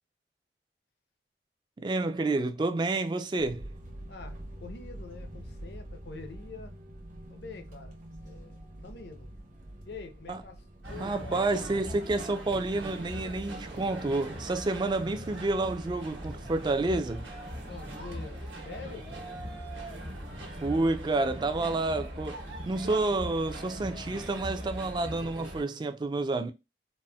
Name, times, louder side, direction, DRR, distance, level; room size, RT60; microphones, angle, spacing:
voice 1, 1.8-3.7 10.3-10.4 11.0-17.3 20.6-26.5, right 2 dB, 25° right, 0.3 m, -29 dB
sound 1, 3.4-21.7, right 1 dB, 45° right, 0.8 m, -48 dB
voice 2, 4.1-6.8 7.3-8.0 8.2-9.3 9.8-10.6 10.9-11.4 17.6-19.1, left 4 dB, 65° left, 0.6 m, -46 dB
sound 2, 10.8-25.6, equal, 80° right, 1.2 m, -40 dB
4.1 x 2.0 x 2.2 m
head